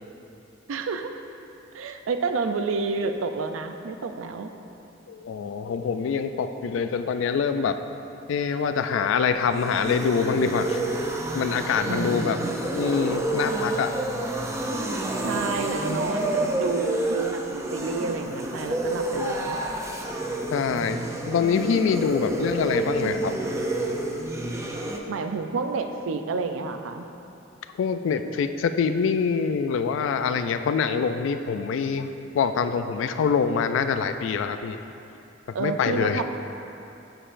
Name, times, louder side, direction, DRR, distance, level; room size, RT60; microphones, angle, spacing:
voice 1, 0.7-1.2 1.7-4.5 11.9-12.5 15.2-19.6 22.1-22.3 25.1-27.1 35.5-36.2, right 4 dB, 80° right, 7 dB, 0.4 m, -30 dB
voice 2, 5.1-7.8 8.3-10.8 11.1-13.9 20.5-21.0 21.3-23.3 27.8-34.8 35.5-36.2, left 6 dB, 70° left, 9 dB, 0.3 m, -25 dB
sound 1, 9.3-25.0, right 1 dB, 15° right, 0.4 m, -29 dB
7.7 x 6.4 x 2.5 m, 2.8 s
head